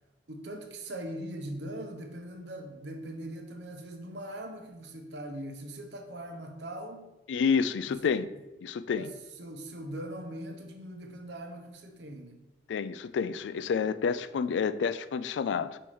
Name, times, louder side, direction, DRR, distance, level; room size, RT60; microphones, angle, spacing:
voice 1, 0.3-7.1 7.9-8.1 9.0-12.4, right 1 dB, 75° right, 0.9 m, -41 dB
voice 2, 7.3-8.3 8.6-9.1 12.7-15.8, left 6 dB, 85° left, 0.3 m, -29 dB
5.4 x 4.4 x 4.6 m
head